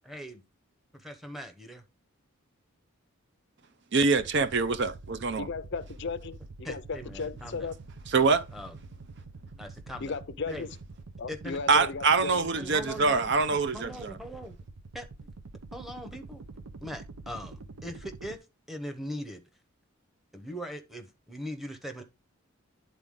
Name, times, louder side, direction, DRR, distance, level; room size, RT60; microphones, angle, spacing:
voice 1, 0.0-0.4 0.9-1.8 6.6-7.7 8.5-8.8 9.6-10.2 10.5-10.7 11.3-11.6 12.6-14.6 14.9-15.1 15.7-16.4 16.8-19.4 20.3-22.0, equal, ahead, 0.9 m, -40 dB
voice 2, 3.9-5.5 8.1-8.4 11.7-14.1, right 4 dB, 55° right, 0.6 m, -24 dB
sound 1, 4.1-18.4, right 3 dB, 90° right, 0.7 m, -46 dB
voice 3, 5.4-7.7 10.0-10.8 11.2-12.5, left 4 dB, 55° left, 0.5 m, -36 dB
10.0 x 4.0 x 3.6 m
head